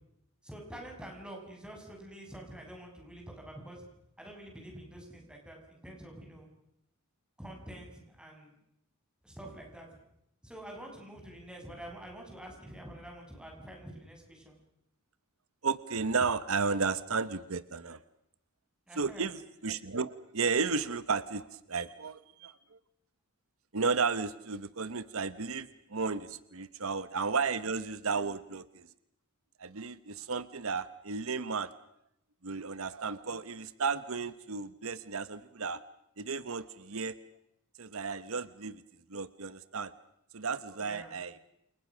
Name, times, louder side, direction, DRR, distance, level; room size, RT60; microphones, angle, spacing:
voice 1, 0.4-3.8 4.2-6.5 7.4-8.5 9.2-9.9 10.4-14.5 18.9-19.3 40.8-41.1, right 1 dB, 5° right, 0 dB, 7.0 m, -47 dB
voice 2, 15.6-18.0 18.9-22.8 23.7-28.9 29.6-31.7 32.4-35.8 36.2-37.2 37.8-38.8 39.1-39.9 40.3-41.4, right 4 dB, 70° right, 14 dB, 1.0 m, -33 dB
29.5 x 28.5 x 6.3 m, 0.80 s
head